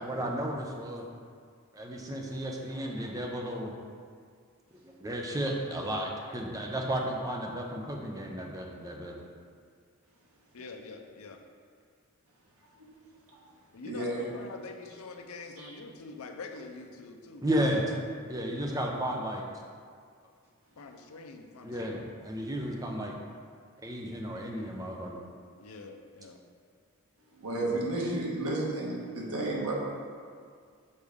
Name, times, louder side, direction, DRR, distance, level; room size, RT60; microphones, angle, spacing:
voice 1, 0.0-1.0 1.7-3.7 4.8-9.2 17.4-17.9 18.2-19.4 21.6-23.2 23.8-25.2, equal, 15° right, 0 dB, 0.6 m, -33 dB
voice 2, 10.5-11.4 13.7-17.4 20.8-22.0 25.6-26.4, left 3 dB, 80° left, 4 dB, 0.6 m, -45 dB
voice 3, 13.8-14.3 15.6-15.7 27.3-29.7, right 2 dB, 90° right, -4 dB, 1.3 m, -32 dB
6.4 x 5.1 x 3.5 m, 2.1 s
head